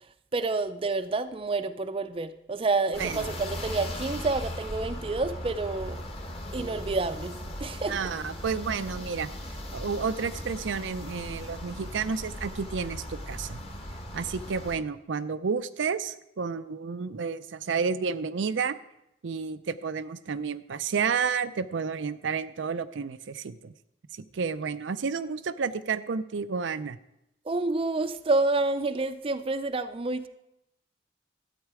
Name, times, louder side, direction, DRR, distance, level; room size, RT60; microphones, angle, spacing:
voice 1, 0.3-6.0 6.5-8.0 27.5-30.3, right 3 dB, 30° right, 11 dB, 0.5 m, -28 dB
sound 1, 2.9-14.7, left 1 dB, 30° left, 1.4 m, -38 dB
voice 2, 7.9-13.6 14.1-18.8 19.2-23.7 24.2-27.0, right 5 dB, 90° right, 11 dB, 0.5 m, -31 dB
12.5 x 8.3 x 4.8 m, 0.86 s
head